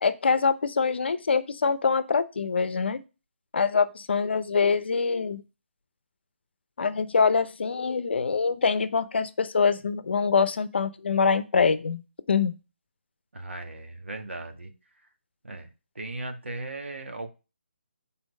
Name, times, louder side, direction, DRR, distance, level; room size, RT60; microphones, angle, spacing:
voice 1, 0.0-3.0 3.5-5.4 6.8-12.0 12.3-12.6, left 5 dB, 60° left, 13 dB, 0.7 m, -24 dB
voice 2, 13.3-14.7 15.4-15.7 15.9-17.3, right 2 dB, 80° right, 5 dB, 1.6 m, -37 dB
6.2 x 4.0 x 5.2 m, 0.30 s
figure-of-eight pair, 150°, 6 cm